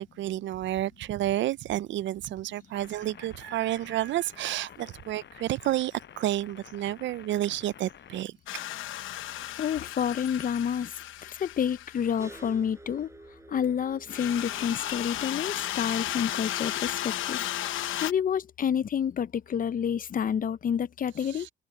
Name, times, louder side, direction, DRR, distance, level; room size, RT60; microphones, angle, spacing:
voice 1, 0.0-8.3 21.2-21.5, right 14 dB, 70° right, 0.5 m, -30 dB
sound 1, 2.7-8.3, left 9 dB, 65° left, 6.8 m, -50 dB
sound 2, 8.5-12.3 14.1-18.1, left 13 dB, 85° left, 0.9 m, -34 dB
voice 2, 9.6-10.9 11.4-13.1 13.5-17.4 18.0-21.5, left 8 dB, 45° left, 0.6 m, -29 dB
sound 3, 12.2-18.0, right 2 dB, 15° right, 7.7 m, -51 dB
cardioid pair, 90°, 20 cm